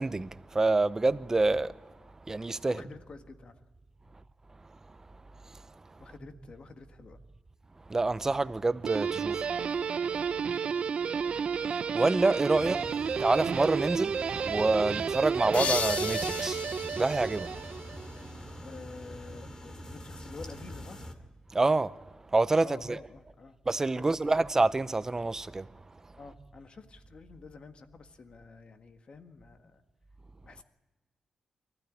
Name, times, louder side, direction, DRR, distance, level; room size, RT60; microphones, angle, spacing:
voice 1, 0.0-1.8 2.3-2.8 5.5-5.6 7.9-9.5 11.9-12.8 13.2-14.2 14.5-16.7 16.9-17.6 21.5-22.0 22.3-23.0 23.7-25.7, right 3 dB, 20° right, 0.7 m, -27 dB
voice 2, 2.6-3.6 4.0-4.2 6.0-7.2 10.3-10.8 12.5-12.9 18.6-21.0 22.6-23.6 23.9-24.3 26.2-29.8 30.4-30.6, left 4 dB, 50° left, 1.7 m, -49 dB
Guitar, 8.8-18.2, right 6 dB, 60° right, 0.7 m, -31 dB
sound 1, 12.5-21.1, equal, 30° left, 2.5 m, -45 dB
sound 2, 15.5-18.3, left 6 dB, 80° left, 0.9 m, -35 dB
24.0 x 15.0 x 10.0 m
wide cardioid pair, 115°, 2 cm